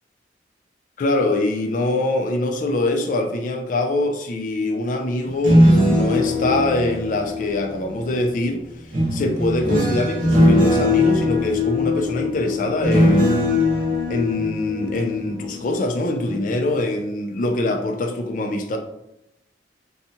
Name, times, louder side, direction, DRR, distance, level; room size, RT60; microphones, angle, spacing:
voice 1, 1.0-8.6 9.1-13.4 14.1-18.8, left 2 dB, 45° left, 4 dB, 0.3 m, -23 dB
sound 1, 5.3-8.1 8.9-15.9 16.2-16.5, left 1 dB, 50° right, 0.7 m, -20 dB
2.7 x 2.2 x 2.7 m, 0.81 s
head